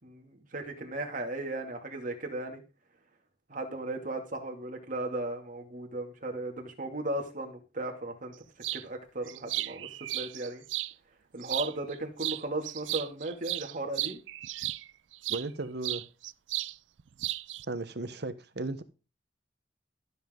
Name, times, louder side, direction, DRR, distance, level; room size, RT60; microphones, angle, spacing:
voice 1, 0.0-2.6 3.5-8.3 8.7-9.9 10.1-10.6 11.3-14.2, right 2 dB, 45° right, 2.5 m, -36 dB
sound 1, 8.6-8.8 9.3-10.9 11.4-11.9 12.2-15.5 15.8-16.7 17.0-17.7, right 16 dB, 85° right, 0.4 m, -35 dB
voice 2, 15.3-16.0 17.7-18.8, right 2 dB, 60° right, 1.1 m, -35 dB
13.5 x 7.5 x 3.9 m
head